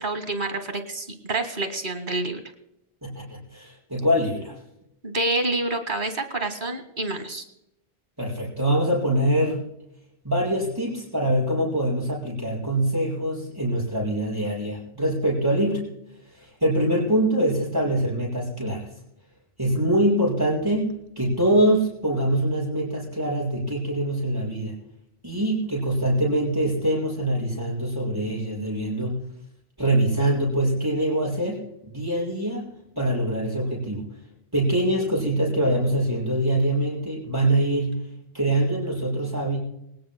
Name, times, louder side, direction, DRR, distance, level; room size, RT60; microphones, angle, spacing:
voice 1, 0.0-2.4 5.0-7.4, right 2 dB, 50° right, 7 dB, 2.1 m, -28 dB
voice 2, 3.0-4.5 8.2-9.7 10.2-15.9 16.4-18.9 19.6-24.8 25.2-29.2 29.8-32.7 33.0-34.1 34.5-38.1 38.3-39.6, right 1 dB, 20° right, -6 dB, 6.1 m, -24 dB
25.5 x 18.5 x 2.2 m, 0.80 s
omnidirectional pair, 1.1 m